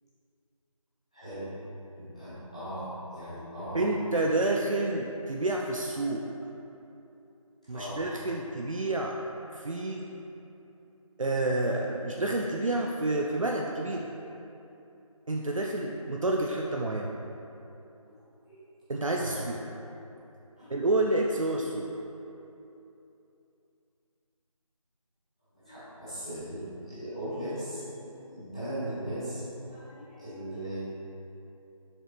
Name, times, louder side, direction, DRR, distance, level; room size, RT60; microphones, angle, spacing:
voice 1, 1.1-1.5 1.9-3.9 7.6-8.0 18.5-18.6 19.2-19.4 20.6-20.7 25.5-30.8, equal, 10° left, -17 dB, 1.2 m, -38 dB
voice 2, 3.7-6.3 7.7-9.2 9.5-10.1 11.2-14.1 15.3-17.1 18.9-19.6 20.7-21.9, right 2 dB, 65° right, 0 dB, 0.5 m, -29 dB
6.5 x 4.4 x 3.4 m, 2.9 s
figure-of-eight pair, 180°, 18 cm